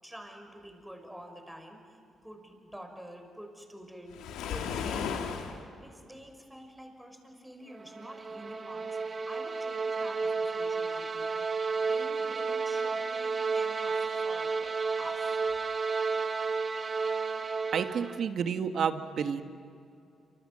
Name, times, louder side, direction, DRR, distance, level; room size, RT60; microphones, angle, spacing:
voice 1, 0.0-5.2 5.8-9.0 9.3-14.6 15.0-15.4, equal, 5° right, 4 dB, 5.8 m, -48 dB
Waves surf, 4.1-5.6, left 6 dB, 90° left, 2.1 m, -34 dB
sound 1, 7.8-18.3, right 4 dB, 45° right, 1.4 m, -32 dB
voice 2, 17.7-19.4, right 7 dB, 70° right, 9 dB, 1.5 m, -30 dB
27.5 x 26.0 x 7.7 m, 2.4 s
supercardioid pair, 60°, 0 cm